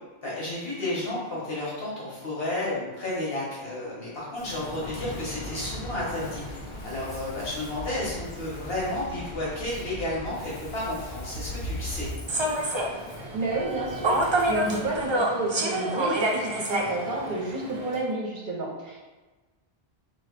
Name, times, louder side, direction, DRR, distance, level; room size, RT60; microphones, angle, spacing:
voice 1, 0.2-6.6 6.8-12.1, left 1 dB, 65° left, -6 dB, 1.6 m, -32 dB
Ocean, 4.3-15.1, left 1 dB, 85° left, 1.5 m, -43 dB
sound 1, 4.8-12.1, left 1 dB, 35° left, 0.6 m, -39 dB
Human voice / Subway metro underground, 12.3-18.0, right 1 dB, 40° right, 0.4 m, -28 dB
voice 2, 13.3-19.0, right 2 dB, 55° right, -2 dB, 0.8 m, -31 dB
4.1 x 2.9 x 3.2 m, 1.2 s
omnidirectional pair, 1.1 m